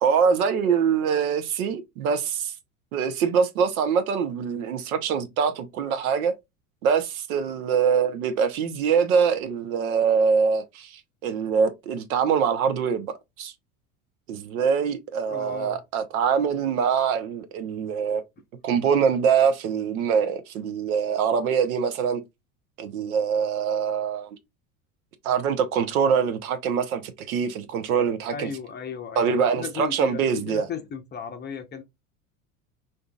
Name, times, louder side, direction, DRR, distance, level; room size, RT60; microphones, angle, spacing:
voice 1, 0.0-2.5 2.9-6.3 6.8-13.5 14.3-18.2 18.6-22.2 22.8-24.4 25.2-28.5 29.2-30.7, right 6 dB, 75° right, 0.8 m, -24 dB
voice 2, 15.2-15.8 28.3-31.8, left 7 dB, 25° left, 0.6 m, -35 dB
3.7 x 2.6 x 2.2 m
hypercardioid pair, 85°, 43 cm